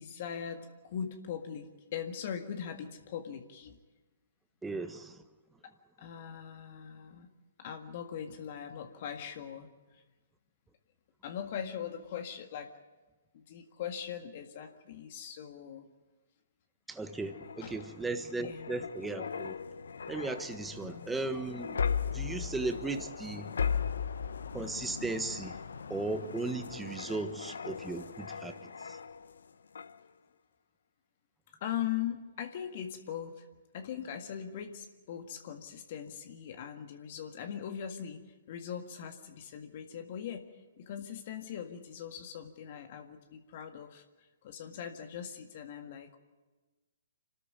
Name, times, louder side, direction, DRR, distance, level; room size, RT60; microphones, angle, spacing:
voice 1, 0.0-3.8 5.6-5.7 6.0-7.3 7.6-10.0 11.2-12.7 13.3-15.9 17.6-17.8 18.4-18.9 20.8-21.1 31.6-33.4 33.7-40.5 40.8-46.2, left 9 dB, 50° left, 5 dB, 1.8 m, -40 dB
voice 2, 4.6-5.2 16.9-19.5 20.1-21.8 22.1-23.5 24.5-25.6 25.9-28.6 28.8-29.0, right 3 dB, 5° right, 8 dB, 1.3 m, -36 dB
sound 1, 17.1-29.4 29.8-30.0, left 6 dB, 75° left, 0.9 m, -38 dB
26.5 x 13.0 x 9.4 m, 1.2 s
hypercardioid pair, 130°, 0 cm